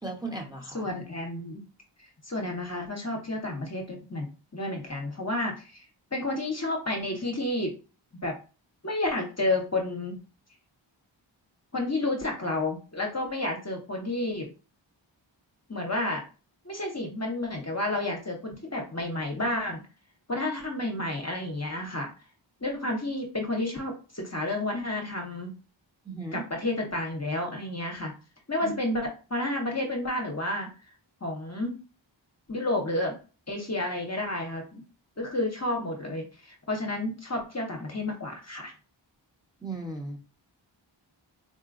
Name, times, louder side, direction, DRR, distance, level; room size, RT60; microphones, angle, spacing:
voice 1, 0.0-0.9 26.0-26.4 28.6-28.7 39.6-40.2, right 2 dB, 10° right, 2 dB, 0.8 m, -36 dB
voice 2, 0.7-1.6 2.0-4.3 4.5-5.8 6.1-7.8 8.2-8.4 8.8-10.2 11.7-14.5 15.7-16.2 16.6-19.8 20.3-22.1 22.6-25.5 26.3-28.1 28.5-30.9 31.2-31.8 32.5-33.2 33.5-34.8 35.2-38.7, left 1 dB, 35° left, 1 dB, 0.7 m, -31 dB
3.9 x 2.2 x 2.5 m, 0.33 s
wide cardioid pair, 50°, 47 cm